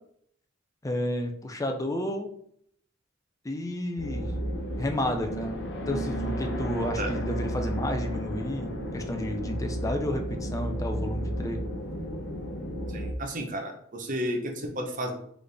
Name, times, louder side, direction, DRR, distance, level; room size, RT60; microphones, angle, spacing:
voice 1, 0.8-2.3 3.4-4.3 4.8-5.6 5.9-11.6, left 1 dB, 15° left, 5 dB, 0.5 m, -31 dB
sound 1, 4.0-13.1, equal, 60° left, 0.8 m, -33 dB
voice 2, 12.9-15.1, equal, 40° right, 3 dB, 0.8 m, -32 dB
4.1 x 3.3 x 3.4 m, 0.67 s
head